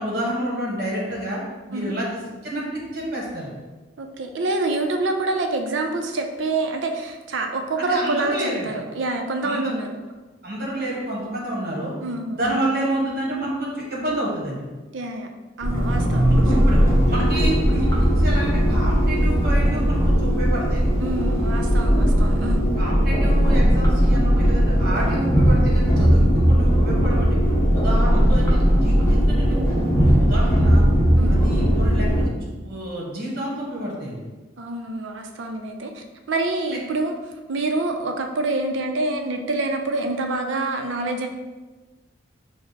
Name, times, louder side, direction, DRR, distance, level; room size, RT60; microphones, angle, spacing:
voice 1, 0.0-1.4 1.7-3.5 7.8-8.7 9.4-9.7 10.4-11.9 12.3-14.6 16.3-16.8 17.1-20.9 22.8-27.4 27.7-30.8 31.3-32.3 32.6-34.2 36.7-36.8, right 1 dB, 50° right, -4 dB, 1.2 m, -29 dB
voice 2, 4.0-8.4 8.6-9.9 12.0-12.5 14.9-15.3 15.6-16.3 21.0-22.6 31.2-31.4 34.6-37.1 37.5-41.3, right 2 dB, 65° right, 4 dB, 0.5 m, -26 dB
sound 1, 15.6-32.2, equal, 15° left, 0.8 m, -18 dB
4.7 x 2.1 x 4.0 m, 1.2 s
head